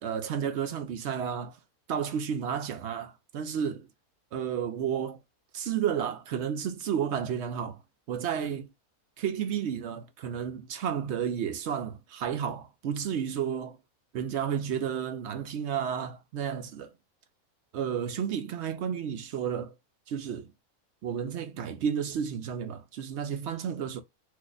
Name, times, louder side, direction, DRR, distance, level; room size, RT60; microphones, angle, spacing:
voice 1, 0.0-1.6 1.9-3.9 4.3-5.2 5.5-7.8 8.1-8.7 9.2-13.8 14.1-16.9 17.7-19.7 20.1-20.5 21.0-24.0, right 8 dB, 65° right, 0.7 m, -32 dB
2.6 x 2.4 x 3.8 m
omnidirectional pair, 1.5 m